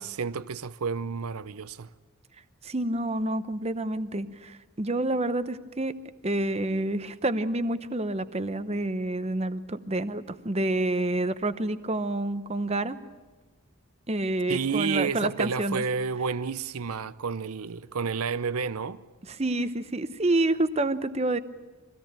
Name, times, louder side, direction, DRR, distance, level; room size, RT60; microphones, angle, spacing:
voice 1, 0.0-1.9 14.5-19.0, right 5 dB, 90° right, 0.7 m, -30 dB
voice 2, 2.6-5.9 6.2-13.0 14.1-15.8 19.3-21.4, right 2 dB, 30° right, 0.8 m, -28 dB
24.0 x 17.0 x 8.9 m
head